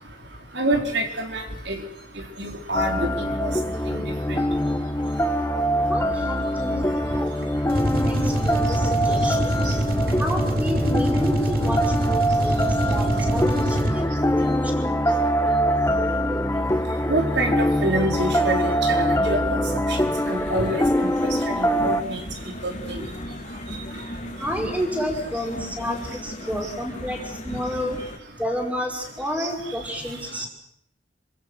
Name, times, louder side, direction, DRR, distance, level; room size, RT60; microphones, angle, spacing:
voice 1, 0.6-1.8 2.4-3.1 3.4-3.5 3.9-4.0 4.3-4.4 17.1-19.6 19.9-21.1 21.6-22.2 22.6-23.0 29.4-29.5, right 1 dB, 65° right, 3 dB, 4.4 m, -26 dB
sound 1, 2.7-22.0, equal, 15° left, 1.0 m, -23 dB
voice 2, 5.9-7.3 8.0-9.5 10.2-15.1 24.4-28.0 28.4-30.5, equal, 10° right, 2 dB, 5.6 m, -30 dB
sound 2, 7.6-14.2, right 1 dB, 50° right, 3.1 m, -25 dB
sound 3, 20.1-28.2, left 1 dB, 40° left, 3.5 m, -37 dB
28.0 x 26.0 x 6.5 m, 0.74 s
head